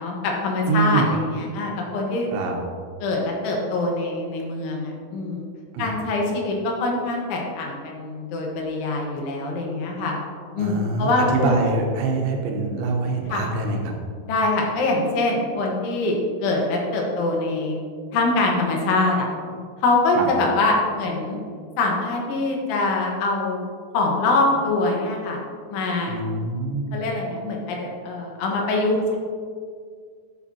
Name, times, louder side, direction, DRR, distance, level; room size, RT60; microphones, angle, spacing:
voice 1, 0.0-2.3 3.0-5.5 5.8-10.2 10.6-11.6 13.3-13.4 14.3-17.8 18.1-19.3 19.8-21.4 21.8-23.6 23.9-25.4 25.7-26.2 26.9-29.2, left 2 dB, 75° left, 0 dB, 3.6 m, -24 dB
voice 2, 0.7-1.1 2.3-2.6 5.7-5.9 10.6-13.9 20.2-20.3 26.1-27.0, right 3 dB, 75° right, 1 dB, 3.3 m, -24 dB
12.0 x 8.4 x 2.8 m, 2.1 s
omnidirectional pair, 5.7 m